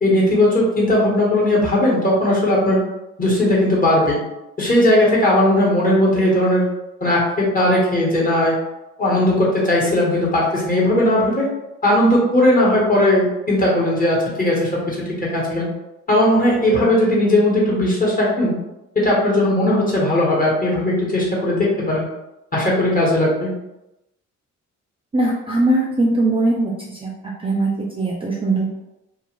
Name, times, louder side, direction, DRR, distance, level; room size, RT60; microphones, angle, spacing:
voice 1, 0.0-2.8 3.2-4.2 4.6-6.7 7.0-8.5 9.0-11.5 11.8-15.7 16.1-18.5 18.9-22.1 22.5-23.5, left 1 dB, 30° left, -5 dB, 1.2 m, -17 dB
voice 2, 25.1-27.1 27.4-28.8, right 2 dB, 20° right, -3 dB, 0.4 m, -20 dB
2.5 x 2.4 x 3.1 m, 0.94 s
cardioid pair, 90°, 30 cm